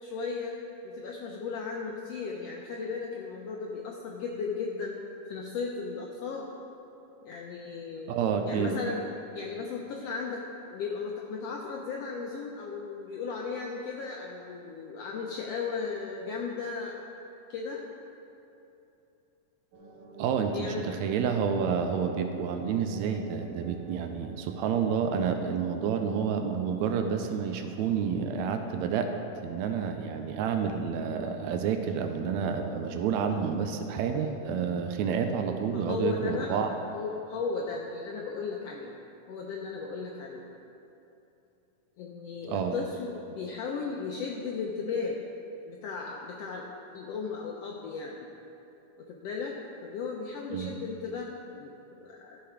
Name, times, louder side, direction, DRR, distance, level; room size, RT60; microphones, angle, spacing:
voice 1, 0.0-0.6 0.8-5.0 5.3-6.5 7.2-8.1 8.5-9.0 9.3-17.0 17.5-17.8 20.5-21.4 21.9-22.1 35.7-36.7 36.9-38.9 39.3-40.4 42.0-45.2 45.7-46.7 46.9-48.3 49.1-49.6 49.8-51.3 51.6-52.4, left 5 dB, 85° left, -1 dB, 1.4 m, -36 dB
voice 2, 8.1-8.8 20.2-29.1 29.4-36.7 42.4-42.8 50.5-50.8, right 6 dB, 80° right, 6 dB, 1.7 m, -29 dB
sound 1, 19.7-28.0, right 1 dB, 65° right, 1.3 m, -49 dB
13.0 x 5.8 x 4.9 m, 2.9 s
omnidirectional pair, 3.7 m